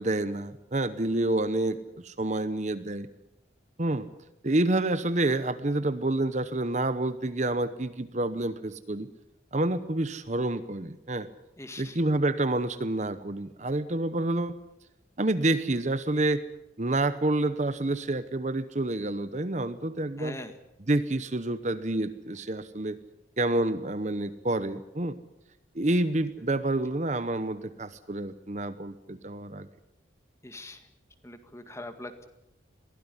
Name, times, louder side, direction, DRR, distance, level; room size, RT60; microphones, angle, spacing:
voice 1, 0.0-3.1 3.8-4.1 4.4-9.1 9.5-11.3 11.8-14.6 15.2-16.4 16.8-20.4 20.9-23.0 23.4-25.2 25.7-29.7, right 2 dB, 40° right, 12 dB, 0.9 m, -28 dB
voice 2, 11.6-12.0 20.2-20.6 30.4-30.9 31.2-32.2, left 1 dB, 15° left, 8 dB, 1.9 m, -42 dB
22.5 x 16.5 x 9.8 m, 0.90 s
head